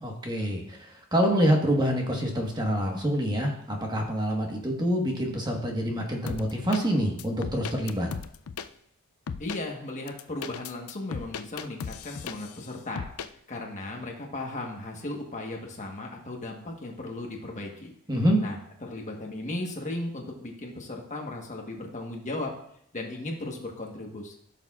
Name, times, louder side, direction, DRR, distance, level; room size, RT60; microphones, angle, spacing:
voice 1, 0.0-8.1 18.1-18.4, equal, 20° right, 1 dB, 1.4 m, -26 dB
sound 1, 6.3-6.8 7.2-8.7 9.3-9.6 10.1-12.6 13.0-13.3, left 6 dB, 80° left, 0.5 m, -36 dB
voice 2, 9.4-17.9 18.4-22.5 22.9-24.4, left 2 dB, 35° left, 1 dB, 1.3 m, -36 dB
15.0 x 6.6 x 2.4 m, 0.71 s
head